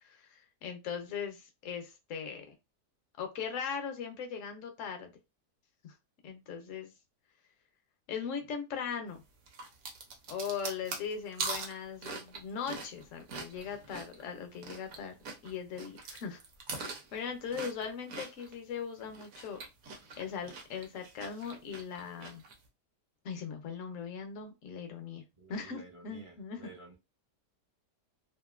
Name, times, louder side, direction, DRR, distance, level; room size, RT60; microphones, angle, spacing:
voice 1, 0.0-2.5 3.2-5.1 5.8-5.9 6.2-6.9 8.1-9.2 10.3-15.1 15.4-16.4 16.7-19.6 20.2-22.4 23.2-25.2 25.5-26.7, left 6 dB, 60° left, 0.9 m, -39 dB
sound 1, 9.5-15.0 15.2-18.6 19.0-22.5, right 4 dB, 60° right, 1.1 m, -42 dB
voice 2, 25.4-26.9, right 2 dB, 30° right, 0.6 m, -52 dB
2.9 x 2.5 x 2.4 m
omnidirectional pair, 1.8 m